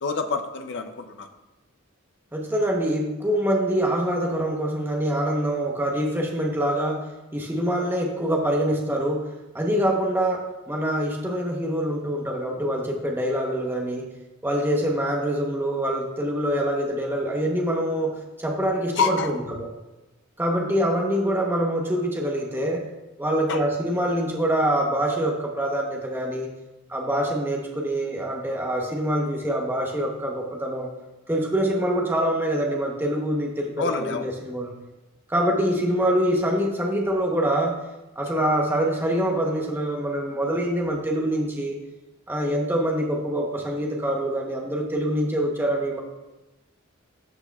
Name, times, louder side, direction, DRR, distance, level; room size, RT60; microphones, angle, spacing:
voice 1, 0.0-1.3 19.0-19.4 23.5-23.6 33.8-34.3, left 4 dB, 55° left, 7 dB, 0.5 m, -27 dB
voice 2, 2.3-7.1 7.3-9.3 9.5-14.1 14.4-19.7 20.4-22.8 23.2-26.5 26.9-30.9 31.3-34.8 35.3-37.8 38.2-41.8 42.3-46.0, right 1 dB, 10° right, 0 dB, 0.9 m, -25 dB
12.0 x 6.1 x 2.3 m, 1.0 s
head